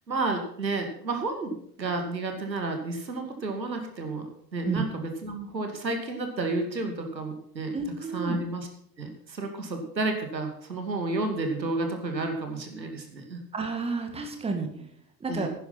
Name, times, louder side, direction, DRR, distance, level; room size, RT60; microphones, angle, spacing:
voice 1, 0.1-7.8 8.1-8.7 9.0-13.4 15.3-15.5, right 2 dB, 85° right, 5 dB, 2.4 m, -31 dB
voice 2, 7.7-8.4 13.5-14.8 15.2-15.5, right 4 dB, 10° right, 5 dB, 1.9 m, -30 dB
11.5 x 9.9 x 5.8 m, 0.66 s
figure-of-eight pair, 100°, 50 cm